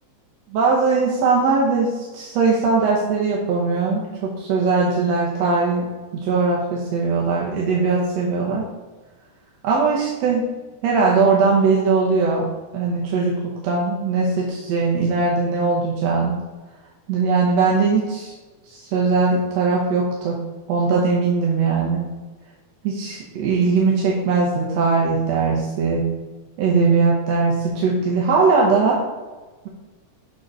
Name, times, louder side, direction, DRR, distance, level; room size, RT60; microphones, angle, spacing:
voice 1, 0.5-8.7 9.6-10.5 10.8-12.5 12.7-16.4 17.1-18.3 18.7-20.4 20.7-22.1 22.8-26.1 26.6-29.0, right 4 dB, 70° right, -3 dB, 1.9 m, -20 dB
6.4 x 3.9 x 6.0 m, 1.3 s
omnidirectional pair, 3.5 m